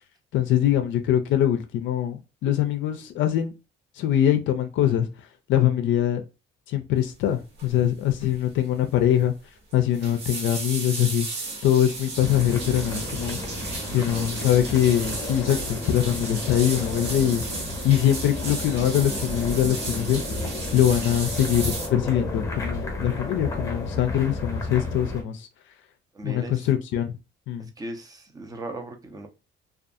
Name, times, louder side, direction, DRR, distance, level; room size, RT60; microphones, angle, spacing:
voice 1, 0.3-3.5 4.0-5.1 5.5-6.2 6.7-9.3 9.7-11.3 11.6-13.4 13.9-17.4 17.8-20.2 20.7-25.5 26.2-27.2 27.5-27.7, left 11 dB, 65° left, 0.4 m, -23 dB
sound 1, 7.6-7.8 8.1-8.4 8.7-8.8 9.7-21.9, right 3 dB, 50° right, 1.0 m, -34 dB
sound 2, 12.2-25.2, left 2 dB, 15° left, 0.8 m, -32 dB
voice 2, 13.8-15.0 26.1-26.7 27.6-29.3, right 2 dB, 15° right, 0.5 m, -39 dB
2.6 x 2.4 x 2.4 m
cardioid pair, 135°, 21 cm